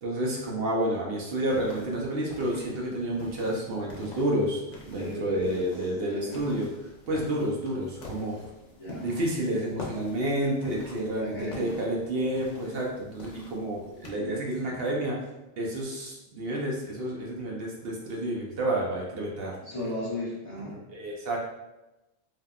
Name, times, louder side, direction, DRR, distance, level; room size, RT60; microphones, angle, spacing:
voice 1, 0.0-6.7 7.1-8.5 9.0-15.2 15.6-19.6 20.9-21.4, right 1 dB, 60° right, -3 dB, 0.8 m, -30 dB
sound 1, 1.5-14.1, left 2 dB, 80° left, 1.0 m, -47 dB
voice 2, 4.9-5.7 6.0-6.5 8.8-9.2 11.1-11.8 14.1-14.8 19.6-20.8, left 1 dB, 45° left, -8 dB, 0.4 m, -36 dB
3.4 x 2.3 x 2.3 m, 0.99 s
omnidirectional pair, 1.3 m